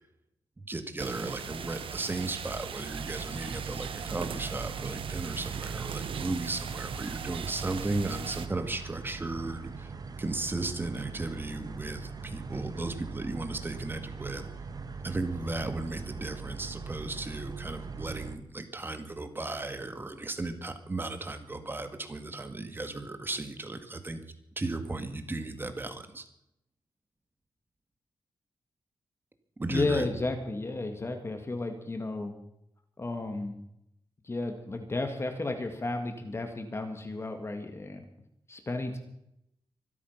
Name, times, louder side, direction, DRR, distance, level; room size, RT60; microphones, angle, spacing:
voice 1, 0.6-9.9 10.2-14.5 15.0-24.2 24.6-26.3 29.6-30.1, right 2 dB, 25° right, 8 dB, 1.8 m, -35 dB
sound 1, 1.0-8.5, right 7 dB, 85° right, 1.2 m, -39 dB
sound 2, 2.9-18.4, right 5 dB, 45° right, 1.4 m, -41 dB
voice 2, 29.7-32.3 33.0-33.6 34.2-38.0 38.5-39.0, left 2 dB, 30° left, 5 dB, 2.0 m, -33 dB
24.5 x 8.5 x 5.8 m, 0.78 s
wide cardioid pair, 115°, 9 cm